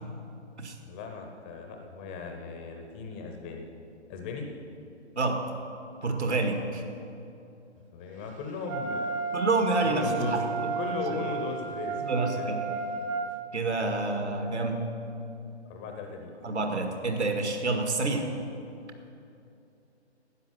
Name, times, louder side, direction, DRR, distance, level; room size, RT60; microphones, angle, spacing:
voice 1, 0.9-3.7 4.1-4.5 7.9-9.1 9.8-12.5 15.7-16.3, left 4 dB, 10° left, 3 dB, 0.5 m, -37 dB
voice 2, 6.0-6.8 9.3-10.5 12.0-12.7 13.5-14.9 16.4-18.3, right 3 dB, 75° right, 4 dB, 2.1 m, -28 dB
Wind instrument woodwind instrument, 8.7-13.3, right 4 dB, 30° right, 0.8 m, -33 dB
12.0 x 9.1 x 8.1 m, 2.7 s
figure-of-eight pair, 140°, 35 cm